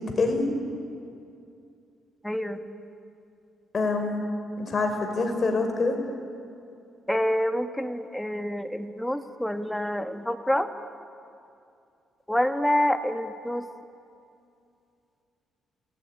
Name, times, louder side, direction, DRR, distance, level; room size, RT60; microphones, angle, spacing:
voice 1, 2.2-2.6 7.1-10.7 12.3-13.7, left 1 dB, 5° left, 7 dB, 1.8 m, -27 dB
voice 2, 3.7-4.2 4.6-6.0, left 3 dB, 40° left, 4 dB, 5.2 m, -25 dB
28.5 x 19.0 x 10.0 m, 2.5 s
cardioid pair, 90°, 0 cm